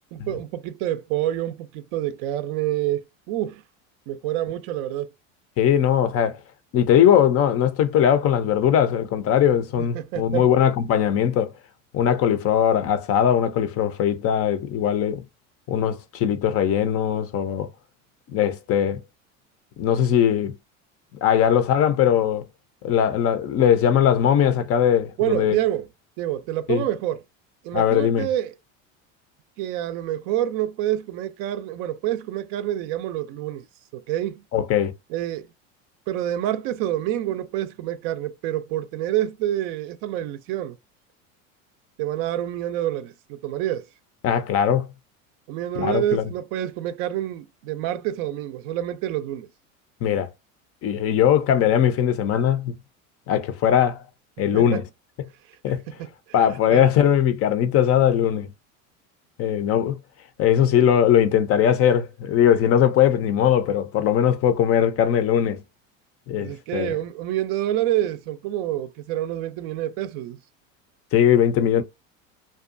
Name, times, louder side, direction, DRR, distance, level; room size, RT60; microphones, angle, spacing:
voice 1, 0.1-3.6 4.1-5.1 9.8-10.5 25.2-25.9 26.2-27.2 27.6-28.6 29.6-33.7 33.9-34.4 35.1-35.5 36.1-40.8 42.0-43.9 45.5-49.5 54.5-54.8 55.9-56.1 56.7-56.8 66.4-70.4, right 12 dB, 60° right, 0.4 m, -27 dB
voice 2, 5.6-6.4 6.7-11.5 11.9-15.2 15.7-17.7 18.3-19.0 19.8-20.5 21.2-22.5 22.8-25.5 26.7-26.8 27.7-28.3 34.5-34.9 44.2-44.9 45.8-46.3 50.0-50.3 50.8-52.7 53.3-54.0 54.4-54.8 55.6-55.8 56.3-58.5 59.4-60.0 60.4-65.6 66.3-67.0 71.1-71.8, left 9 dB, 40° left, 0.4 m, -20 dB
2.6 x 2.2 x 2.5 m
hypercardioid pair, 90°, 39 cm